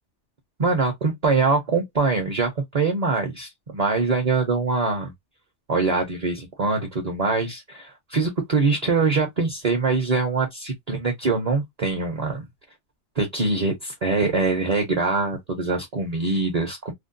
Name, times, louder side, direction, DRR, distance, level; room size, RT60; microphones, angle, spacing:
voice 1, 0.6-5.1 5.7-12.4 13.2-16.9, right 4 dB, 45° right, 0.6 m, -23 dB
2.5 x 2.1 x 2.5 m
omnidirectional pair, 1.2 m